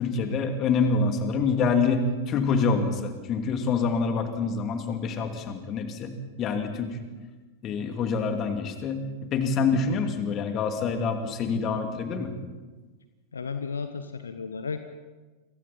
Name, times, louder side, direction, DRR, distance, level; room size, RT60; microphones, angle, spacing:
voice 1, 0.0-7.0 7.6-12.3, left 4 dB, 30° left, 6 dB, 2.7 m, -26 dB
voice 2, 13.3-14.9, left 5 dB, 70° left, 9 dB, 1.1 m, -33 dB
29.5 x 24.0 x 4.3 m, 1.3 s
figure-of-eight pair, 90°, 0 cm